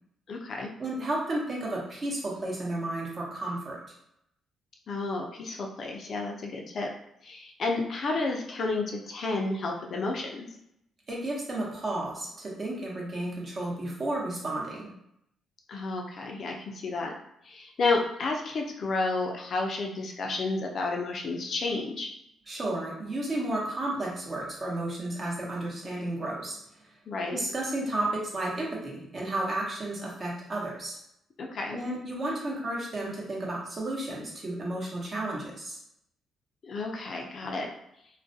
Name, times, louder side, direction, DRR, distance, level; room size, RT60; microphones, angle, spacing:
voice 1, 0.3-0.7 4.9-6.9 7.2-10.5 15.7-17.1 17.4-22.1 27.1-27.4 31.4-31.8 36.6-37.7, left 3 dB, 55° left, 1 dB, 0.4 m, -31 dB
voice 2, 0.8-3.8 11.1-14.9 22.5-26.6 27.3-31.0 31.7-35.8, right 1 dB, 35° right, -3 dB, 0.8 m, -32 dB
2.3 x 2.1 x 2.6 m, 0.76 s
cardioid pair, 90°, 0 cm